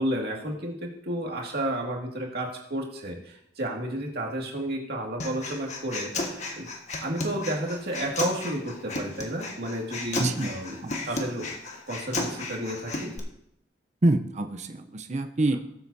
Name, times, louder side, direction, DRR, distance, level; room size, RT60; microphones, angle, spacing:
voice 1, 0.0-6.7 7.0-11.5 11.9-13.1, right 1 dB, 60° right, 0 dB, 2.2 m, -32 dB
Human voice, 5.2-13.2, left 2 dB, 40° left, 1.5 m, -34 dB
voice 2, 10.2-10.5 10.8-10.9 14.0-15.6, right 2 dB, 40° right, 7 dB, 0.7 m, -26 dB
19.0 x 7.8 x 2.7 m, 0.77 s
head